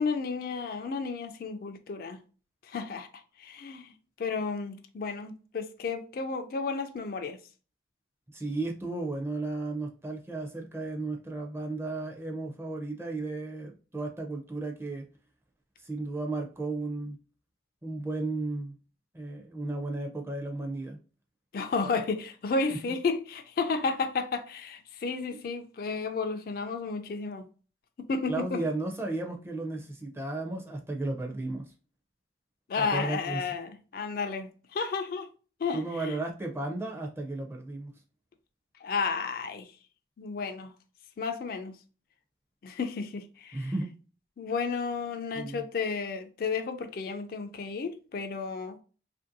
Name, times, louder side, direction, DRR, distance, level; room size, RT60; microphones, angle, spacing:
voice 1, 0.0-2.2 2.7-3.1 3.4-3.9 4.2-7.4 21.5-27.4 28.0-28.6 32.7-35.3 35.6-36.2 38.8-39.7 40.2-40.7 41.2-41.7 42.6-43.7 44.4-48.8, left 4 dB, 50° left, 0.3 m, -32 dB
voice 2, 8.3-15.0 15.8-17.2 17.8-18.8 19.1-21.0 25.3-25.4 28.3-31.7 32.8-33.4 35.7-37.9 43.5-43.9 45.3-45.7, right 2 dB, 15° right, 0.4 m, -34 dB
2.9 x 2.6 x 2.5 m
head